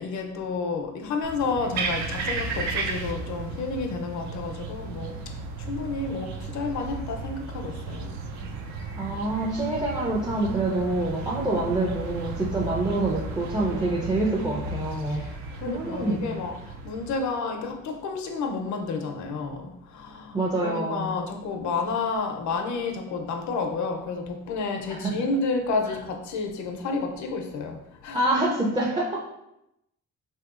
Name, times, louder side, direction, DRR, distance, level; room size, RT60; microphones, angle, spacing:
voice 1, 0.0-8.1 8.4-8.5 15.1-28.4, left 4 dB, 70° left, 4 dB, 0.6 m, -31 dB
sound 1, 1.2-17.2, right 3 dB, 65° right, 0.5 m, -34 dB
voice 2, 9.0-15.3 15.6-16.2 20.3-21.1 24.9-25.1 28.1-29.2, right 2 dB, 15° right, -4 dB, 0.5 m, -26 dB
3.3 x 2.8 x 2.4 m, 0.85 s
cardioid pair, 90°, 30 cm